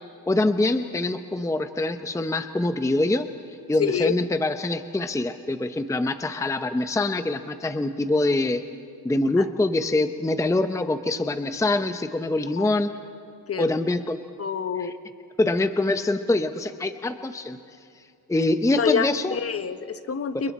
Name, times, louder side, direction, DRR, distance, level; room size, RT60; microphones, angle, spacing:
voice 1, 0.3-3.3 3.7-8.6 9.0-12.9 13.6-14.3 14.8-14.9 15.4-17.6 18.3-19.4 20.3-20.4, left 2 dB, 10° left, 9 dB, 0.7 m, -24 dB
voice 2, 3.8-4.2 9.4-9.5 12.6-12.7 13.5-13.7 14.4-14.9 18.8-20.5, left 6 dB, 35° left, 10 dB, 1.1 m, -27 dB
29.5 x 29.0 x 4.3 m, 2.4 s
cardioid pair, 115°, 39 cm